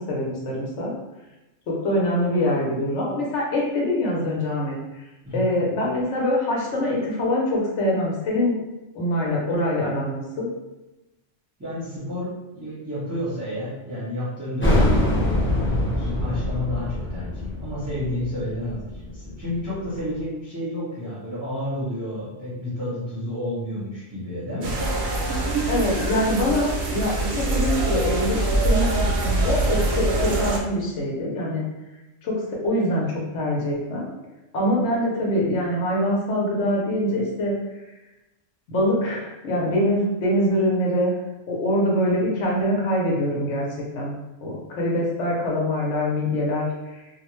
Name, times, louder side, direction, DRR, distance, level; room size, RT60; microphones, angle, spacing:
voice 1, 0.1-0.9 1.7-4.7 5.3-8.6 8.9-10.5 25.7-31.6 32.2-34.0 34.5-37.5 38.7-41.1 41.5-43.7 43.9-44.2 44.4-46.7, left 1 dB, 70° left, -3 dB, 1.0 m, -24 dB
voice 2, 11.6-24.8, left 1 dB, 15° right, -10 dB, 0.7 m, -31 dB
sound 1, 14.6-19.9, left 1 dB, 15° left, 0.4 m, -24 dB
sound 2, 24.6-30.6, right 2 dB, 65° right, 0.8 m, -24 dB
2.4 x 2.1 x 3.0 m, 1.0 s
omnidirectional pair, 1.3 m